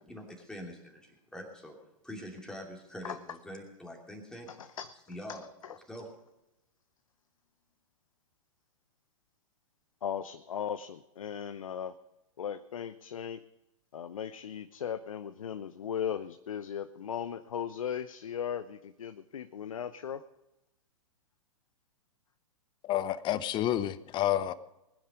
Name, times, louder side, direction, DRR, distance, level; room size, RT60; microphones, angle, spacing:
voice 1, 0.0-1.8 2.0-4.5 5.1-5.4 5.8-6.1, equal, 5° left, -1 dB, 2.8 m, -44 dB
voice 2, 4.5-4.9 5.3-5.8 10.0-11.9 12.4-13.4 13.9-20.2, left 8 dB, 70° left, 11 dB, 0.7 m, -37 dB
voice 3, 22.8-24.5, left 12 dB, 25° left, 16 dB, 0.8 m, -29 dB
20.5 x 9.8 x 5.2 m, 0.92 s
figure-of-eight pair, 110°, 18 cm